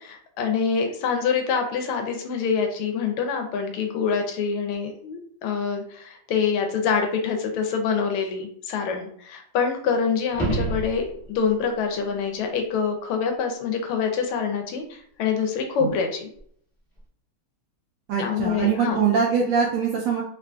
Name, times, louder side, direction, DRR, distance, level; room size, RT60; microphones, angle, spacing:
voice 1, 0.0-16.3 18.2-19.0, left 6 dB, 85° left, 4 dB, 1.5 m, -26 dB
sound 1, 10.3-11.5 16.4-16.5, right 2 dB, 25° left, 0.4 m, -28 dB
voice 2, 18.1-20.2, right 6 dB, 75° right, -2 dB, 1.0 m, -23 dB
3.6 x 2.5 x 2.2 m, 0.63 s
omnidirectional pair, 2.4 m